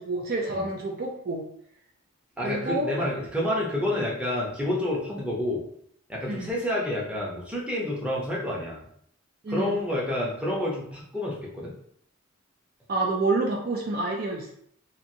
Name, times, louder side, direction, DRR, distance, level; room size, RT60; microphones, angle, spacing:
voice 1, 0.0-1.4 2.4-2.9 6.3-6.5 9.4-9.8 12.9-14.5, right 2 dB, 45° right, 0 dB, 0.4 m, -28 dB
voice 2, 2.4-5.6 6.1-8.8 9.5-11.7, left 1 dB, 5° right, -5 dB, 0.6 m, -29 dB
2.9 x 2.5 x 2.6 m, 0.66 s
head